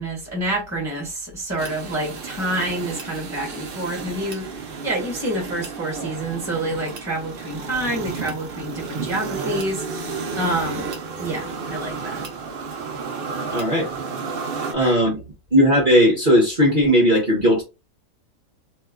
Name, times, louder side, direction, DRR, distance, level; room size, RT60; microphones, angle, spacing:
voice 1, 0.0-4.5 4.8-10.9 11.2-12.2 14.7-15.0, right 1 dB, 10° right, 1.1 m, -28 dB
sound 1, 1.6-14.7, right 5 dB, 60° right, 0.6 m, -32 dB
voice 2, 13.5-13.9 14.7-15.2 15.5-17.6, equal, 40° right, 0.9 m, -17 dB
2.8 x 2.2 x 3.6 m
omnidirectional pair, 1.6 m